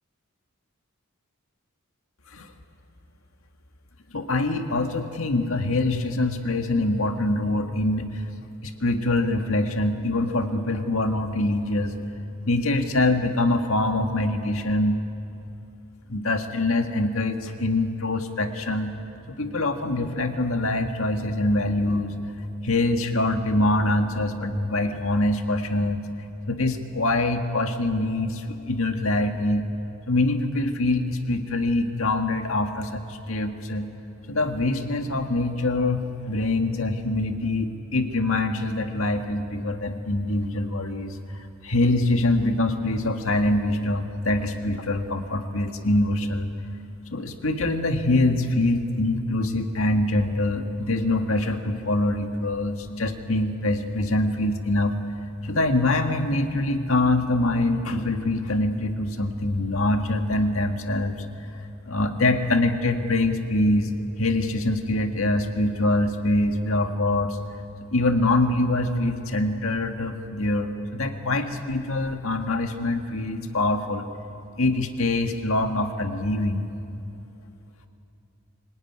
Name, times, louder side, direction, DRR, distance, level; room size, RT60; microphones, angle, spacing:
voice 1, 4.1-8.2 8.6-11.9 12.4-15.0 16.1-18.9 19.3-22.4 22.6-26.0 26.5-29.7 30.1-33.9 34.3-41.2 41.6-46.5 47.1-54.9 55.4-61.2 61.8-63.9 64.2-67.4 67.9-74.0 74.6-76.7, left 2 dB, 80° left, 5 dB, 1.8 m, -24 dB
24.5 x 19.0 x 9.6 m, 2.9 s
head